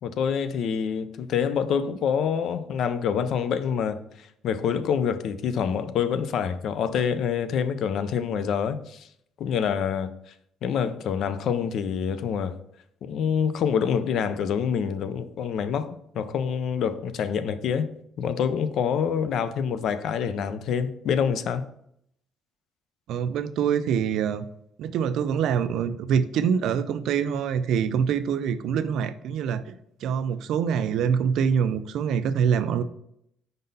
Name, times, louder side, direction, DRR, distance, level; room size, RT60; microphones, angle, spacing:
voice 1, 0.0-9.1 9.4-10.1 10.6-12.6 13.0-17.9 18.2-21.6, left 7 dB, 60° left, 0.5 m, -26 dB
voice 2, 23.1-24.4 24.8-29.8 30.0-32.8, right 7 dB, 70° right, 0.4 m, -25 dB
5.2 x 4.0 x 5.4 m
cardioid pair, 145°, 0 cm